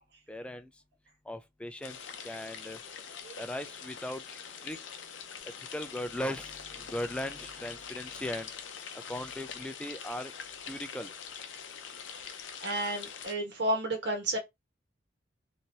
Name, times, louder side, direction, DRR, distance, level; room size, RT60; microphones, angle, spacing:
voice 1, 0.3-0.7 1.3-2.0 2.2-2.8 3.4-4.8 5.6-8.5 9.1-10.3 10.6-11.1, left 1 dB, 5° left, 0.3 m, -38 dB
sound 1, 1.8-13.3, left 7 dB, 70° left, 0.5 m, -44 dB
voice 2, 12.6-14.4, right 1 dB, 60° right, 1.1 m, -31 dB
3.0 x 2.6 x 2.8 m
head